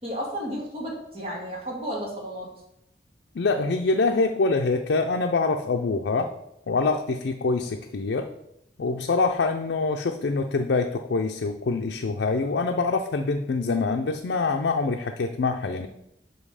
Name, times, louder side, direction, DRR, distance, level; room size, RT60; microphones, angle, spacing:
voice 1, 0.0-2.5, equal, 35° right, -3 dB, 2.1 m, -33 dB
voice 2, 3.3-6.3 6.7-8.3 8.8-15.9, left 3 dB, 80° left, 4 dB, 0.5 m, -25 dB
5.8 x 5.4 x 4.9 m, 0.81 s
head